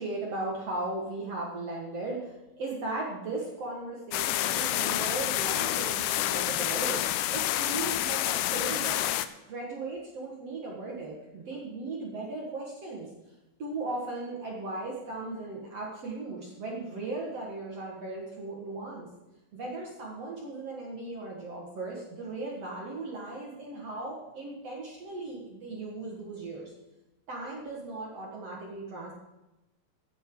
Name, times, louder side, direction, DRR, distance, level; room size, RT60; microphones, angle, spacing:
voice 1, 0.0-7.0 7.3-9.0 9.5-13.1 13.6-19.1 19.5-26.7 27.3-29.1, right 2 dB, 60° right, -2 dB, 1.6 m, -37 dB
sound 1, 4.1-9.3, left 14 dB, 85° left, 2.4 m, -28 dB
15.0 x 11.0 x 3.9 m, 0.99 s
omnidirectional pair, 5.5 m